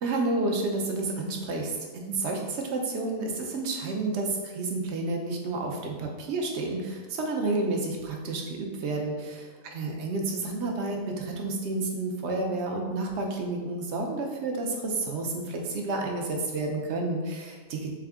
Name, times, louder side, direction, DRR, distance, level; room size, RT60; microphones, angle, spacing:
voice 1, 0.0-17.9, right 2 dB, 60° right, 1 dB, 0.8 m, -30 dB
3.6 x 3.6 x 3.5 m, 1.4 s
omnidirectional pair, 1.5 m